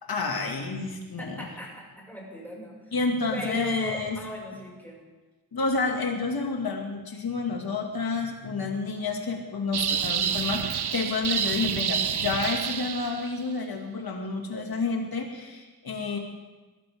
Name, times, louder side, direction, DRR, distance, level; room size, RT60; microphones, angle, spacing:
voice 1, 0.0-1.5 2.9-4.2 5.5-16.2, left 4 dB, 70° left, 2 dB, 2.4 m, -29 dB
voice 2, 1.2-2.9 3.3-5.0, equal, 5° left, -3 dB, 6.2 m, -38 dB
sound 1, 9.7-13.4, right 8 dB, 85° right, 0.8 m, -28 dB
20.5 x 13.5 x 3.8 m, 1.2 s
wide cardioid pair, 80°, 38 cm